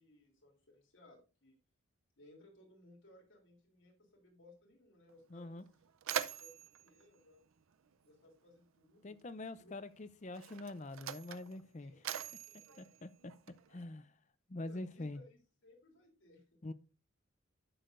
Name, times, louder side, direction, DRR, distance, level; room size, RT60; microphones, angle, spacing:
voice 1, 0.0-1.6 2.2-5.9 6.4-7.4 8.0-9.1 9.6-9.7 11.8-12.9 14.6-16.4, left 1 dB, 65° left, 3.2 m, -63 dB
Mechanisms, 5.1-5.2 5.6-8.3 9.3-9.4 10.3-13.8, right 9 dB, 75° right, 0.5 m, -44 dB
voice 2, 5.3-5.6 9.0-11.9 12.8-13.3 13.7-14.1 14.5-15.2 16.6-16.7, left 2 dB, 35° left, 0.6 m, -45 dB
11.5 x 6.5 x 2.5 m
head